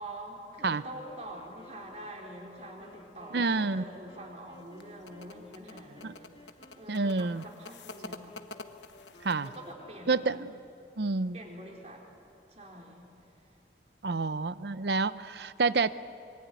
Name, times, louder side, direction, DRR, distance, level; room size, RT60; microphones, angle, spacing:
voice 1, 0.0-8.4 9.3-10.3 11.3-12.1 12.5-13.6, right 1 dB, 40° right, 0 dB, 4.3 m, -46 dB
Wind instrument woodwind instrument, 0.9-10.8, left 2 dB, 30° left, 2.0 m, -56 dB
voice 2, 3.3-3.8 6.0-6.1 6.9-7.4 9.2-9.5 10.1-10.5 11.0-11.4 14.0-15.9, right 3 dB, 65° right, 15 dB, 0.7 m, -28 dB
sound 1, 4.6-9.7, left 2 dB, 80° left, 1.1 m, -48 dB
25.0 x 24.0 x 9.5 m, 2.7 s
head